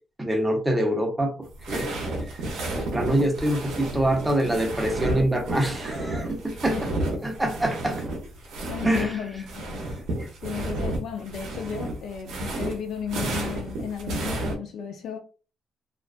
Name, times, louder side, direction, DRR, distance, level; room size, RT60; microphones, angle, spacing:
voice 1, 0.2-1.3 1.7-2.0 2.8-6.8 7.2-8.0 8.8-9.1, right 1 dB, 10° right, 0.7 m, -25 dB
sound 1, 1.4-9.1 9.3-14.5, right 2 dB, 85° right, 0.6 m, -31 dB
voice 2, 8.7-9.8 10.4-15.2, left 7 dB, 70° left, 0.4 m, -34 dB
2.4 x 2.2 x 2.4 m
cardioid pair, 90°, 0 cm